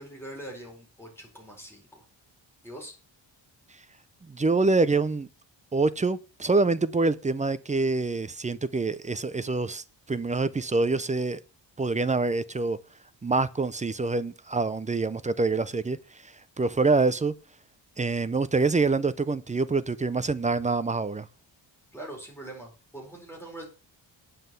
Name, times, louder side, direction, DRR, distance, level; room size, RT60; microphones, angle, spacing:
voice 1, 0.0-2.1 2.6-2.9 21.9-23.6, right 1 dB, 5° left, 4.2 m, -42 dB
voice 2, 4.3-5.3 5.7-11.4 11.8-12.8 13.2-16.0 16.6-17.3 18.0-21.3, right 3 dB, 15° right, 0.4 m, -26 dB
9.5 x 5.8 x 6.8 m
wide cardioid pair, 165°, 45 cm